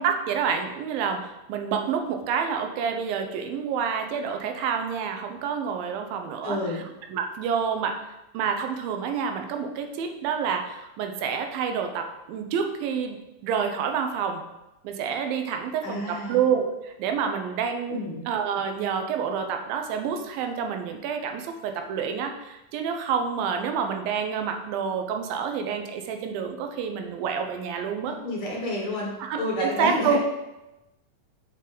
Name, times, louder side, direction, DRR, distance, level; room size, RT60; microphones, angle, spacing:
voice 1, 0.0-6.6 7.1-8.0 8.3-13.2 13.4-14.4 14.8-16.7 17.0-28.2 29.3-30.2, right 6 dB, 80° right, 5 dB, 2.5 m, -28 dB
voice 2, 6.4-6.8 15.8-16.4 17.9-18.2 28.0-30.2, left 1 dB, 55° left, -2 dB, 1.6 m, -30 dB
6.7 x 5.3 x 5.0 m, 0.97 s
omnidirectional pair, 4.2 m